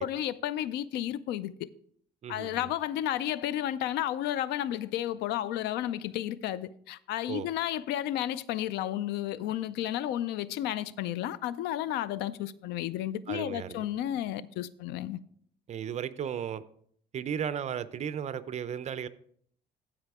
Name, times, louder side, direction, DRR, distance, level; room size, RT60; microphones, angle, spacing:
voice 1, 0.0-1.5 2.3-15.2, left 12 dB, 85° left, 0.4 m, -32 dB
voice 2, 2.2-2.7 7.3-7.5 13.3-13.9 15.7-16.6 17.1-19.1, right 8 dB, 40° right, 0.6 m, -35 dB
14.5 x 4.9 x 3.5 m
cardioid pair, 110°, 17 cm